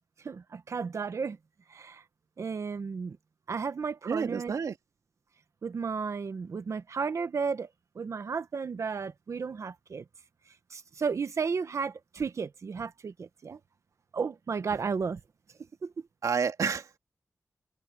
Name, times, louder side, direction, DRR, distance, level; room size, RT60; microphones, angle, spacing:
voice 1, 0.2-1.4 1.7-2.0 2.4-3.2 3.5-4.5 5.6-7.7 7.9-10.0 10.7-13.6 14.1-15.2 15.8-15.9, right 5 dB, 60° right, 1.0 m, -33 dB
voice 2, 4.0-4.8 16.2-17.0, right 6 dB, 80° right, 2.5 m, -29 dB
wide cardioid pair, 115°, 6 cm